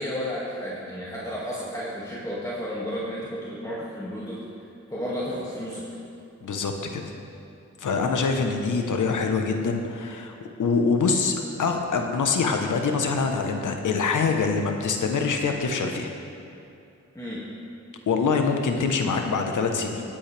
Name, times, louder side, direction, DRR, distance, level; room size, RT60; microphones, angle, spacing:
voice 1, 0.0-4.4 4.9-5.9 17.1-17.4, equal, 10° left, -7 dB, 2.2 m, -32 dB
voice 2, 6.4-7.0 7.8-16.1 18.1-20.0, left 4 dB, 90° left, 4 dB, 1.1 m, -25 dB
18.5 x 8.8 x 3.4 m, 2.7 s
cardioid pair, 65°, 30 cm